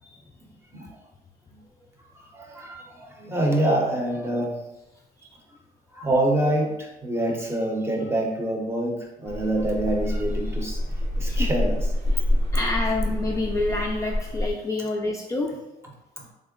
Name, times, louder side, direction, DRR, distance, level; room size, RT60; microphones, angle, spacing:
voice 1, 2.1-4.6 5.9-11.9 16.2-16.3, right 1 dB, 15° right, 0 dB, 0.7 m, -26 dB
sound 1, 9.3-14.5, left 1 dB, 80° right, 1.3 m, -26 dB
voice 2, 12.5-15.5, left 2 dB, 20° left, -1 dB, 0.3 m, -28 dB
3.6 x 2.0 x 3.7 m, 0.96 s
cardioid pair, 110°, 17 cm